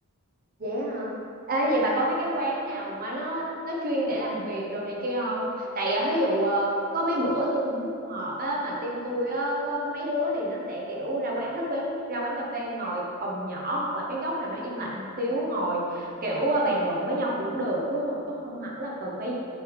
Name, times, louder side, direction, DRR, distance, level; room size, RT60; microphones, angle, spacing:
voice 1, 0.6-1.1 1.5-19.3, right 1 dB, 45° right, -3 dB, 1.1 m, -28 dB
8.5 x 3.6 x 4.7 m, 2.5 s
head